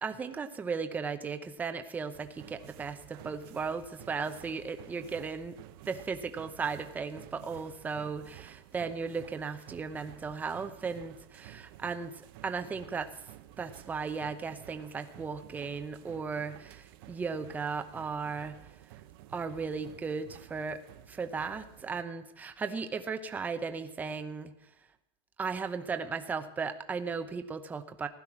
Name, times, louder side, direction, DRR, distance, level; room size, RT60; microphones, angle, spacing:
voice 1, 0.0-5.6 5.9-13.1 13.6-18.5 19.3-20.8 21.1-24.5 25.4-28.1, right 5 dB, 10° right, 8 dB, 0.8 m, -36 dB
sound 1, 2.1-22.0, right 13 dB, 60° right, 0.9 m, -52 dB
15.5 x 12.0 x 6.1 m, 0.84 s
supercardioid pair, 160°, 13 cm